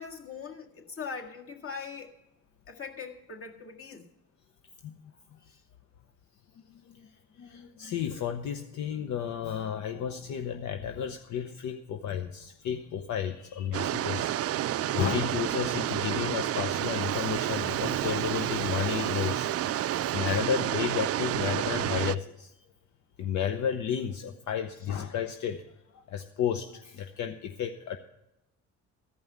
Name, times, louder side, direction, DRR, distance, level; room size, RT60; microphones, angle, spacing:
voice 1, 0.0-2.1 2.7-4.0, left 5 dB, 45° left, 1.9 m, -41 dB
voice 2, 6.7-7.1 7.4-14.4 14.9-22.5 23.2-25.6 25.9-28.0, left 8 dB, 70° left, 0.8 m, -32 dB
sound 1, 13.7-22.1, right 12 dB, 50° right, 0.4 m, -30 dB
14.0 x 5.4 x 8.0 m
cardioid pair, 90°, 30 cm